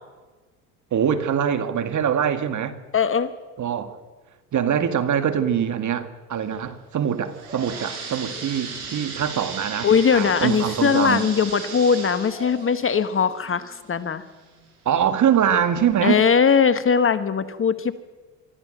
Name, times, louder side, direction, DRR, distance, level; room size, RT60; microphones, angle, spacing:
voice 1, 0.9-2.8 3.6-4.0 4.5-11.2 14.9-16.2, right 8 dB, 40° right, 2.0 m, -23 dB
voice 2, 2.9-3.3 9.8-14.2 16.0-17.9, left 6 dB, 30° left, 1.2 m, -20 dB
sound 1, 7.1-14.7 15.2-15.3 16.0-16.1 16.5-16.6, right 4 dB, 90° right, 5.0 m, -36 dB
24.5 x 13.5 x 7.9 m
hypercardioid pair, 75°, 43 cm